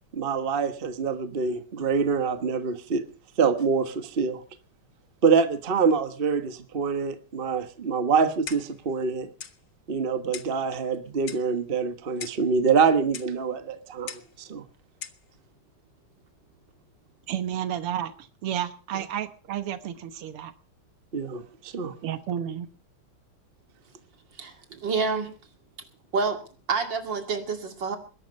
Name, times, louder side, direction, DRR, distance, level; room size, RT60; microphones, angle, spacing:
voice 1, 0.1-3.0 3.4-4.4 5.2-9.3 9.9-14.6 21.1-21.9, right 5 dB, 30° right, 1.2 m, -25 dB
Clock, 8.5-8.8 9.4-9.6 10.3-10.6 11.3-11.5 12.2-12.5 13.1-13.3 14.1-14.3 15.0-15.2, left 8 dB, 60° left, 1.7 m, -40 dB
voice 2, 17.3-20.5 22.0-22.7, right 10 dB, 90° right, 2.0 m, -31 dB
voice 3, 24.4-25.3 26.1-26.4 26.7-28.0, right 4 dB, 55° right, 3.1 m, -28 dB
21.0 x 11.5 x 5.3 m
omnidirectional pair, 2.4 m